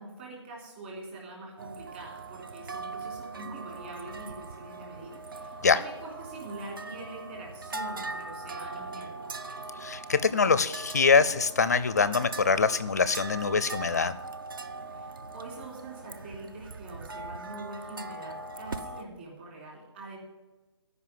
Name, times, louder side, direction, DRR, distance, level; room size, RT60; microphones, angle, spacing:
voice 1, 0.0-9.6 14.9-20.2, right 2 dB, 25° right, -2 dB, 3.6 m, -44 dB
sound 1, 1.6-19.0, right 3 dB, 50° right, 0.8 m, -41 dB
voice 2, 9.8-14.1, left 5 dB, 35° left, 15 dB, 0.5 m, -24 dB
14.0 x 5.5 x 9.3 m, 1.1 s
hypercardioid pair, 170°, 15 cm